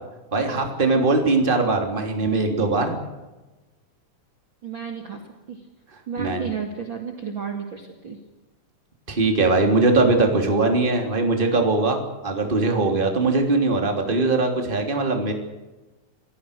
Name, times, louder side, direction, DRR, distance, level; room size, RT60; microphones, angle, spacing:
voice 1, 0.3-3.0 6.2-6.5 9.1-15.3, right 3 dB, 15° right, 3 dB, 2.9 m, -21 dB
voice 2, 4.6-5.2 5.5-5.7 6.1-8.2, right 6 dB, 40° right, 3 dB, 2.6 m, -32 dB
27.0 x 17.5 x 6.6 m, 1.1 s
omnidirectional pair, 4.0 m